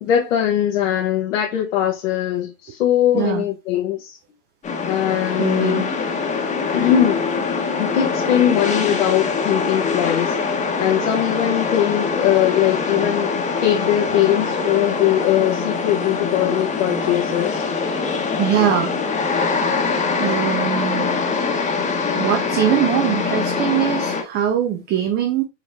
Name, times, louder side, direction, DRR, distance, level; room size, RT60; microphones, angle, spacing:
voice 1, 0.0-4.2 4.9-6.1 6.7-7.3 7.8-17.6, left 11 dB, 70° left, 1.0 m, -21 dB
voice 2, 3.1-3.4 5.4-5.8 18.4-18.9 20.2-21.1 22.2-25.4, right 10 dB, 25° right, 0.5 m, -21 dB
sound 1, 4.6-24.2, left 4 dB, 20° left, 1.0 m, -23 dB
5.7 x 2.9 x 2.5 m
hypercardioid pair, 110°, 39 cm